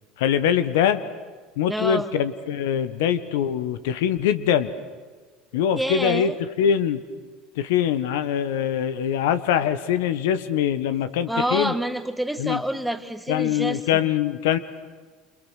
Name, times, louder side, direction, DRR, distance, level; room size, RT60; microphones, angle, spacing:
voice 1, 0.2-1.0 1.6-4.7 5.5-6.3 6.6-7.0 7.5-11.7 12.4-12.6 13.3-14.6, left 9 dB, 75° left, 12 dB, 1.4 m, -23 dB
voice 2, 1.7-2.1 5.8-6.4 11.3-14.1, right 1 dB, 5° right, 9 dB, 1.8 m, -27 dB
28.5 x 28.0 x 6.6 m, 1.4 s
hypercardioid pair, 80°, 0 cm